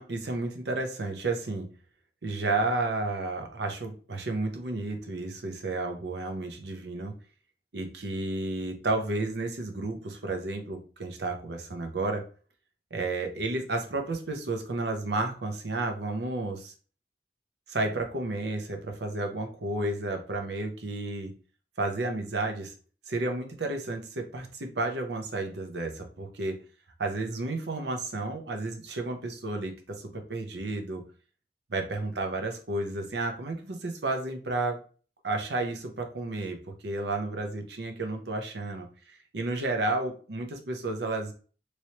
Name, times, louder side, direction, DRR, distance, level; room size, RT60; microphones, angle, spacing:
voice 1, 0.0-1.7 2.2-7.1 7.7-12.3 12.9-16.7 17.7-21.3 21.8-22.7 23.1-26.6 27.0-31.0 31.7-34.8 35.2-41.3, right 2 dB, 65° right, 4 dB, 0.7 m, -32 dB
3.1 x 3.0 x 2.9 m, 0.39 s
head